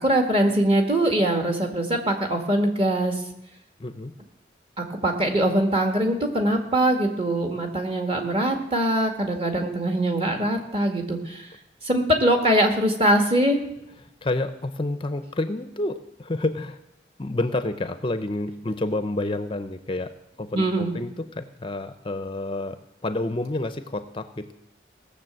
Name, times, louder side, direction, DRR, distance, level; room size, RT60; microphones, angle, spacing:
voice 1, 0.0-3.2 4.8-11.5 11.8-13.6 20.5-20.9, right 1 dB, 30° right, 4 dB, 1.9 m, -22 dB
voice 2, 3.8-4.1 14.2-16.8 17.2-24.5, left 2 dB, 30° left, 11 dB, 0.6 m, -29 dB
18.0 x 6.9 x 7.7 m, 0.86 s
head